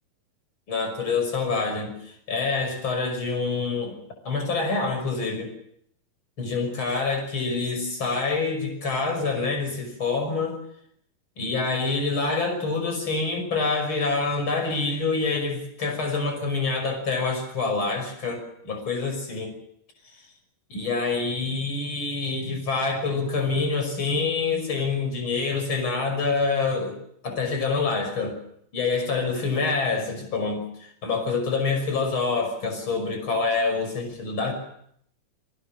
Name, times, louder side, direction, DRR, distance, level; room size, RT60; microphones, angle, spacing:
voice 1, 0.7-4.0 4.2-5.5 6.4-10.6 11.4-19.5 20.7-27.0 27.2-28.3 28.7-34.5, left 4 dB, 30° left, 5 dB, 6.4 m, -26 dB
28.0 x 21.0 x 6.3 m, 0.70 s
omnidirectional pair, 4.4 m